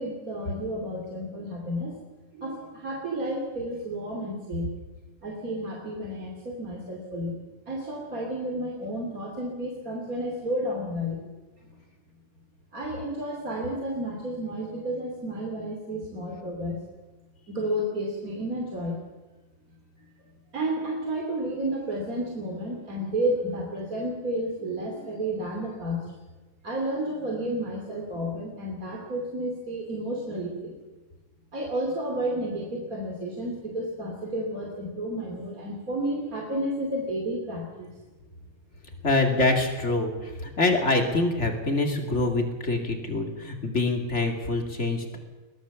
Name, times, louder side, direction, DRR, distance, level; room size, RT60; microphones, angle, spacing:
voice 1, 0.0-2.0 2.3-4.7 5.2-7.4 7.7-11.2 12.7-16.8 17.5-19.0 20.5-26.0 26.6-30.8 31.5-37.9, right 1 dB, 30° right, 0 dB, 2.9 m, -31 dB
voice 2, 39.0-45.2, left 2 dB, 25° left, 3 dB, 2.5 m, -25 dB
22.0 x 17.0 x 7.1 m, 1.2 s
omnidirectional pair, 3.4 m